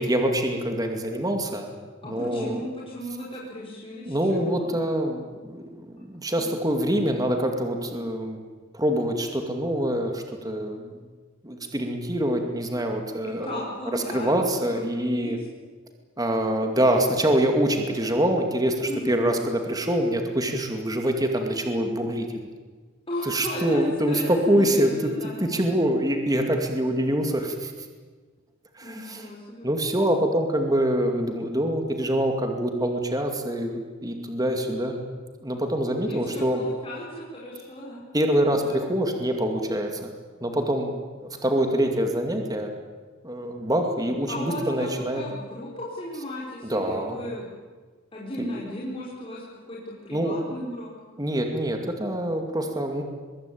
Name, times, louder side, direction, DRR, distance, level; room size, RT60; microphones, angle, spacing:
voice 1, 0.0-2.6 4.1-5.6 6.0-8.4 8.7-10.9 11.4-13.6 13.9-15.4 16.2-22.3 23.2-27.7 28.7-29.2 29.6-35.0 35.4-36.6 38.1-40.1 40.4-40.9 41.2-42.7 43.2-45.2 46.7-47.2 48.4-48.5 50.1-50.4 51.2-53.0, right 1 dB, 20° right, 4 dB, 2.3 m, -25 dB
voice 2, 2.0-4.7 6.4-6.5 13.2-15.5 18.9-19.2 23.1-25.4 28.8-29.7 36.1-38.0 38.5-38.9 44.3-47.5 48.1-50.9, left 1 dB, 25° left, -5 dB, 5.0 m, -36 dB
24.0 x 22.0 x 8.7 m, 1.4 s
head